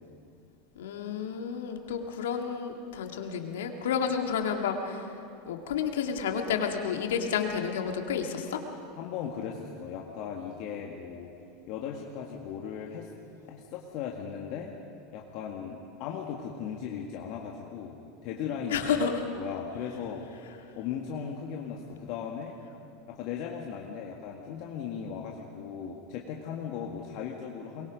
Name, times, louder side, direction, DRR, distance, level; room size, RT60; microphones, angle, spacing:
voice 1, 0.8-5.1 5.5-8.6 18.7-19.2, left 7 dB, 85° left, 4 dB, 2.1 m, -30 dB
voice 2, 9.0-11.3 11.7-13.1 13.4-14.7 15.1-18.0 18.2-18.9 19.3-20.2 20.7-22.6 23.1-27.9, left 7 dB, 60° left, -1 dB, 1.8 m, -37 dB
23.5 x 22.0 x 5.3 m, 2.5 s
hypercardioid pair, 110°, 0 cm